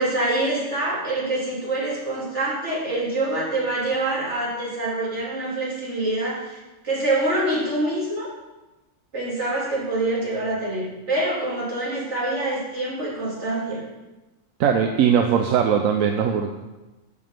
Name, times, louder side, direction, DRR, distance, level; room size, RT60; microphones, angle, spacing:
voice 1, 0.0-6.6 6.8-8.3 9.1-13.8, right 2 dB, 60° right, -6 dB, 3.0 m, -25 dB
voice 2, 14.6-16.5, right 8 dB, 85° right, 5 dB, 1.0 m, -20 dB
6.7 x 5.3 x 6.7 m, 1.1 s
omnidirectional pair, 1.4 m